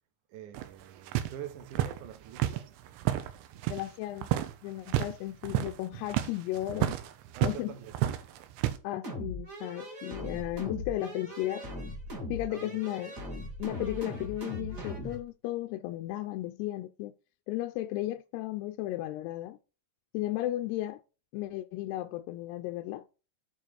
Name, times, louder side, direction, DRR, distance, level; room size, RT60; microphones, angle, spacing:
voice 1, 0.3-2.7 7.3-7.9 12.5-12.8, right 9 dB, 65° right, 2.1 m, -45 dB
sound 1, 0.5-3.9 4.2-4.5 4.8-5.1 5.4-7.6 7.9-8.8, right 13 dB, 90° right, 3.2 m, -31 dB
voice 2, 3.7-4.3 4.6-7.0 7.4-7.8 8.8-11.6 12.3-13.2 13.6-17.1 17.5-19.6 20.1-21.0 21.3-23.0, left 15 dB, 80° left, 2.4 m, -34 dB
sound 2, 9.0-15.2, equal, 30° right, 1.7 m, -39 dB
9.0 x 4.6 x 4.6 m
omnidirectional pair, 5.1 m